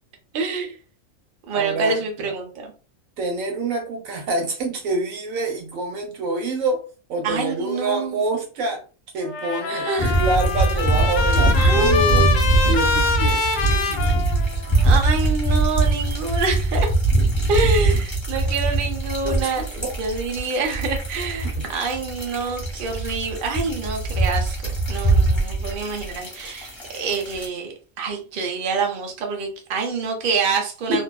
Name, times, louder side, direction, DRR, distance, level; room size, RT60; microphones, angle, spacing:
voice 1, 0.3-0.7 1.5-2.7 7.2-8.2 9.7-10.2 11.5-12.4 14.8-16.9 17.5-31.0, right 3 dB, 50° right, 2 dB, 0.7 m, -26 dB
voice 2, 1.5-2.3 3.2-6.8 7.1-8.8 9.1-9.9 10.2-12.2 12.7-14.2 19.2-19.9 21.6-21.7 30.9-31.0, right 2 dB, 80° right, 3 dB, 1.2 m, -27 dB
Trumpet, 9.2-14.8, left 5 dB, 70° left, 0.9 m, -25 dB
sound 1, 10.0-27.5, right 2 dB, 20° left, 1.1 m, -22 dB
2.5 x 2.3 x 2.2 m, 0.35 s
omnidirectional pair, 1.4 m